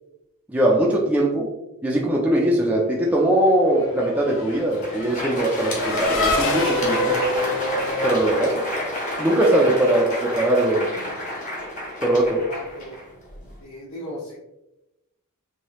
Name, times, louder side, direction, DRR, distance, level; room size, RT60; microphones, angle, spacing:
voice 1, 0.5-1.5 1.8-7.1 8.0-8.5 9.2-10.9 12.0-12.4, right 1 dB, 5° right, -3 dB, 0.4 m, -20 dB
Race car auto racing / Accelerating revving vroom, 3.2-9.3, left 1 dB, 60° left, 0.5 m, -27 dB
Crowd, 4.6-13.5, left 1 dB, 35° left, 1.0 m, -30 dB
voice 2, 12.5-13.0 13.6-14.4, left 1 dB, 80° left, -9 dB, 1.1 m, -36 dB
3.1 x 2.7 x 3.0 m, 0.93 s
head